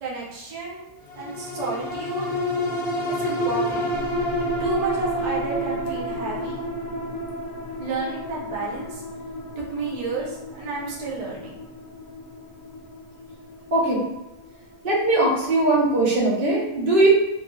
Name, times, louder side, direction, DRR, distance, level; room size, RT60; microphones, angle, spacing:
voice 1, 0.0-0.8 1.1-2.3 3.1-3.8 4.6-6.6 7.8-9.0 9.7-11.6, right 3 dB, 65° right, -4 dB, 0.4 m, -31 dB
sound 1, 1.1-15.8 16.2-16.3, equal, 65° left, 0.5 m, -30 dB
voice 2, 14.8-17.1, right 2 dB, 45° right, -5 dB, 0.9 m, -20 dB
3.1 x 2.5 x 2.2 m, 0.93 s
omnidirectional pair, 1.4 m